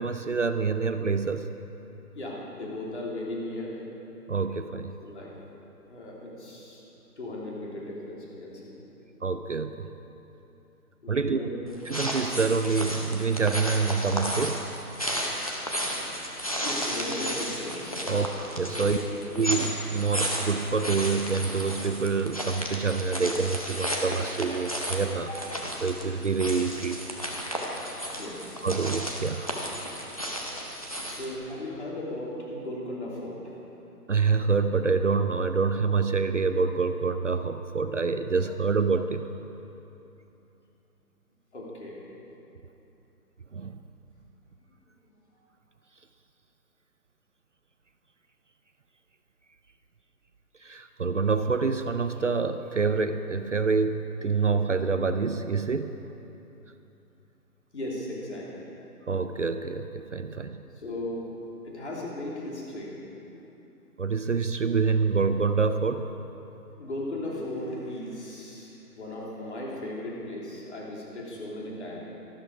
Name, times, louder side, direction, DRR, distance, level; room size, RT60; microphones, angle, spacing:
voice 1, 0.0-1.5 4.3-4.9 9.2-9.9 11.1-11.4 11.9-14.6 18.1-18.3 18.6-19.0 19.4-25.3 25.8-27.2 28.6-29.5 34.1-39.3 43.5-43.8 50.6-56.0 59.1-60.6 64.0-66.1, right 4 dB, 55° right, 9 dB, 0.5 m, -26 dB
voice 2, 2.1-3.8 5.0-5.3 5.9-6.8 7.2-8.8 11.0-11.6 16.6-18.3 18.7-19.4 25.2-25.4 28.1-28.7 31.0-33.6 41.5-42.1 45.0-45.1 57.7-58.6 60.7-61.3 61.6-63.5 66.6-72.0, left 1 dB, 45° left, -4 dB, 3.2 m, -37 dB
sound 1, 11.7-31.3, equal, 25° left, 0.7 m, -33 dB
13.0 x 12.5 x 5.0 m, 3.0 s
hypercardioid pair, 170°, 46 cm